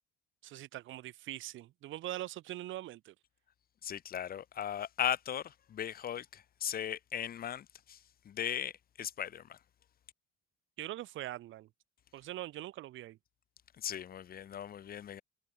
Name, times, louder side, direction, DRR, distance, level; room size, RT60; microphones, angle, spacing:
voice 1, 0.4-3.1 10.8-11.7 12.1-13.2, right 15 dB, 75° right, 5.2 m, -42 dB
voice 2, 3.8-9.6 13.8-15.2, left 9 dB, 45° left, 4.7 m, -38 dB
cardioid pair, 145°, 20 cm